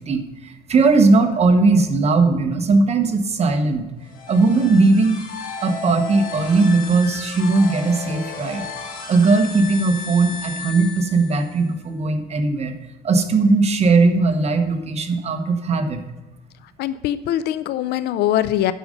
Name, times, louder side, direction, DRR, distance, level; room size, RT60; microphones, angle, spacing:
voice 1, 0.0-3.8 4.3-5.2 5.6-8.6 9.1-12.7 13.0-16.0, right 3 dB, 40° right, 6 dB, 1.1 m, -18 dB
sound 1, 4.0-11.7, left 4 dB, 55° left, 2.1 m, -34 dB
voice 2, 16.8-18.7, left 12 dB, 75° left, 14 dB, 0.4 m, -22 dB
9.1 x 6.4 x 5.1 m, 1.1 s
cardioid pair, 110°, 17 cm